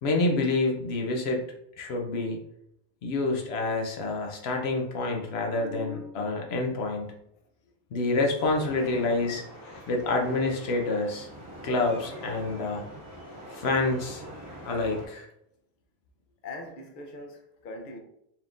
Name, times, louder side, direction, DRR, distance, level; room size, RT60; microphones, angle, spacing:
voice 1, 0.0-1.4 1.8-2.4 3.0-7.1 7.9-9.4 9.9-11.3 11.6-12.9 13.5-14.2 14.6-15.3, left 3 dB, 85° left, 0.9 m, -27 dB
sound 1, 8.4-15.1, equal, 85° right, 1.6 m, -44 dB
voice 2, 9.5-9.9 16.4-18.0, left 2 dB, 55° left, 0.8 m, -42 dB
4.2 x 3.5 x 2.5 m
omnidirectional pair, 1.0 m